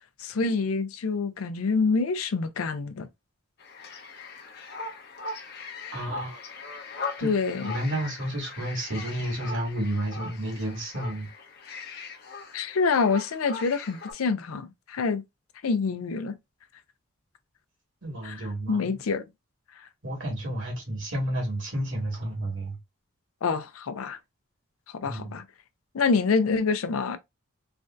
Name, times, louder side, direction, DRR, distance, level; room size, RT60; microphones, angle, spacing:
voice 1, 0.2-3.1 7.2-7.7 12.5-15.2 15.6-16.4 18.2-18.4 18.7-19.2 23.4-24.2 25.0-25.4 25.9-27.2, left 4 dB, 90° left, 0.5 m, -26 dB
sound 1, 3.6-14.1, left 4 dB, 50° left, 0.7 m, -40 dB
voice 2, 5.9-6.4 7.2-11.3 18.0-19.0 20.0-22.8 25.0-25.4, right 1 dB, 60° right, 1.6 m, -31 dB
3.3 x 2.6 x 2.3 m
head